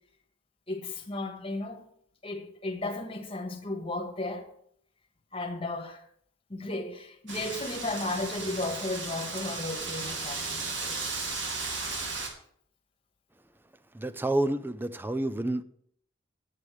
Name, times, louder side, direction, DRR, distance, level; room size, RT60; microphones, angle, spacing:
voice 1, 0.7-1.8 2.2-4.5 5.3-6.0 6.5-11.0, left 2 dB, 30° left, 1.4 m, -34 dB
Wind, 7.3-12.3, right 3 dB, 65° right, 2.0 m, -35 dB
voice 2, 13.9-15.6, right 1 dB, 10° right, 0.4 m, -29 dB
8.8 x 8.5 x 6.3 m
head